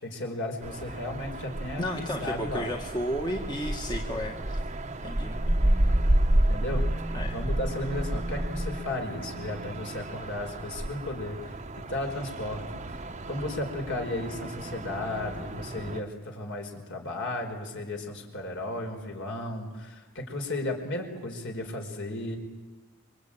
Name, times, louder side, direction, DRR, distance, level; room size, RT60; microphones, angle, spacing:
voice 1, 0.0-2.7 6.5-22.4, left 1 dB, 55° left, 3 dB, 5.0 m, -35 dB
sound 1, 0.6-16.0, right 1 dB, 30° right, 1.2 m, -30 dB
voice 2, 1.8-4.6 5.0-5.4 7.1-7.4, equal, 20° left, 1 dB, 1.9 m, -33 dB
28.0 x 24.0 x 8.9 m, 1.2 s
head